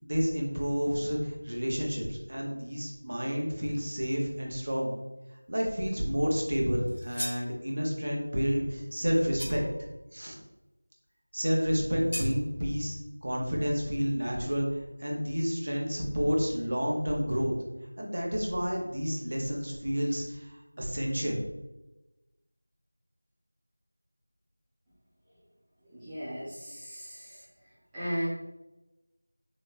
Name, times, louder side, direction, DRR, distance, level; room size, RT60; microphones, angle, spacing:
voice 1, 0.0-4.9 5.5-9.6 10.1-10.4 11.3-17.5 18.0-21.4, equal, 50° right, -1 dB, 0.8 m, -30 dB
sound 1, 6.9-7.5 9.4-9.8 12.1-12.4, equal, 85° left, 0.7 m, -37 dB
voice 2, 25.9-27.4 27.9-28.3, equal, 5° right, -13 dB, 0.4 m, -36 dB
4.0 x 2.3 x 2.6 m, 1.0 s
figure-of-eight pair, 175°, 0 cm